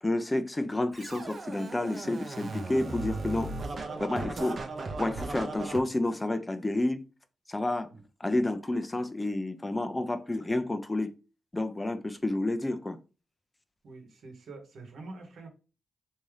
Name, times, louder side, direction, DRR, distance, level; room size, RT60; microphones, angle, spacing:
voice 1, 0.0-3.5 4.0-4.6 5.0-7.0 7.5-7.9 8.2-11.1 11.5-13.0, left 2 dB, 20° left, 0.5 m, -30 dB
Scratching (performance technique), 1.0-5.8, right 3 dB, 55° right, 0.7 m, -37 dB
voice 2, 3.9-4.4 7.9-8.0 13.8-15.5, right 3 dB, 85° right, 1.0 m, -45 dB
3.5 x 2.7 x 3.2 m
cardioid pair, 70°, 0 cm